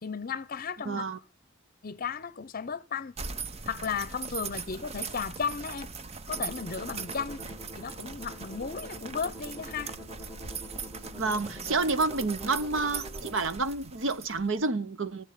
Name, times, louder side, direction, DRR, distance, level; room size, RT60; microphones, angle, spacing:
voice 1, 0.0-1.0 1.8-3.1 3.7-5.9 6.3-7.4 7.7-9.9, left 6 dB, 45° left, 0.7 m, -35 dB
voice 2, 0.8-1.2 11.1-15.2, right 3 dB, 70° right, 0.9 m, -29 dB
sound 1, 3.2-14.7, right 5 dB, 30° right, 0.7 m, -40 dB
sound 2, 6.3-13.4, equal, 5° right, 2.4 m, -46 dB
14.5 x 7.2 x 9.4 m
head